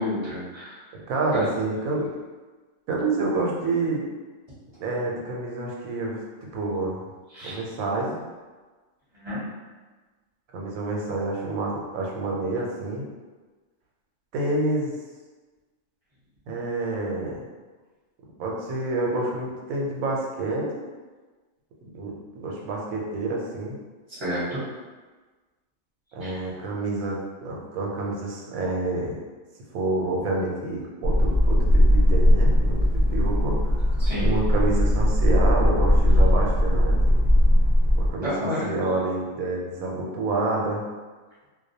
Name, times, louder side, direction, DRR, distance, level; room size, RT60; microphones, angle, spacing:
voice 1, 0.0-0.8 1.3-1.5 7.3-7.6 9.1-9.4 24.1-24.6 26.2-26.4 34.0-34.3 38.2-38.7, left 1 dB, 25° right, -11 dB, 0.8 m, -30 dB
voice 2, 0.9-2.1 2.9-4.0 4.8-7.0 7.4-8.2 10.5-13.0 14.3-14.9 16.5-17.4 18.4-20.8 21.8-23.8 26.1-29.2 29.7-32.8 33.1-37.2 38.0-38.3 38.6-40.8, right 2 dB, 80° right, -2 dB, 1.0 m, -28 dB
sound 1, 31.0-38.1, equal, 60° right, 0.5 m, -19 dB
2.3 x 2.2 x 2.6 m, 1.3 s
omnidirectional pair, 1.4 m